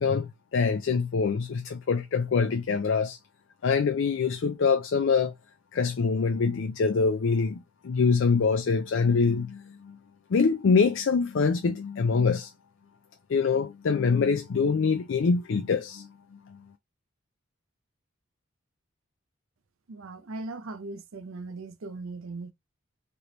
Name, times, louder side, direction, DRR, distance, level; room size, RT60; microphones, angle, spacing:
voice 1, 0.0-3.2 3.6-5.3 5.7-10.0 10.3-12.5 13.3-16.1 16.5-16.6, left 5 dB, 65° left, 0.4 m, -25 dB
voice 2, 19.9-22.5, right 3 dB, 75° right, 0.6 m, -39 dB
3.3 x 3.0 x 3.8 m
head